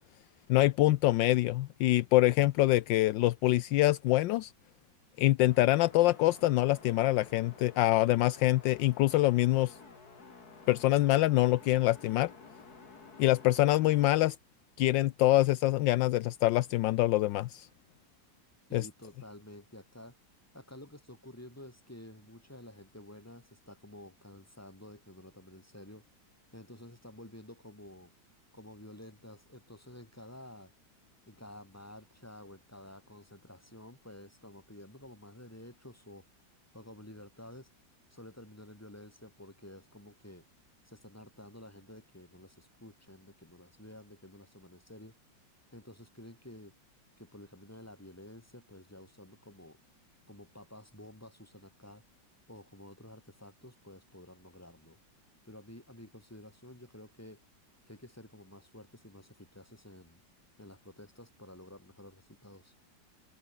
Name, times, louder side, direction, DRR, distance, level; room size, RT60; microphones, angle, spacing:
voice 1, 0.5-4.5 5.2-9.7 10.7-12.3 13.2-14.4 14.8-17.7 18.7-18.9, left 16 dB, 80° left, 1.2 m, -25 dB
sound 1, 5.4-14.3, left 4 dB, 50° left, 3.5 m, -53 dB
voice 2, 18.7-20.2 20.5-28.1 28.5-30.7 31.3-36.3 36.7-37.7 38.1-40.5 40.9-45.1 45.7-46.8 47.2-49.8 50.3-52.0 52.5-55.0 55.4-57.4 57.9-60.2 60.6-62.7, left 1 dB, 5° left, 3.7 m, -51 dB
omnidirectional pair, 2.1 m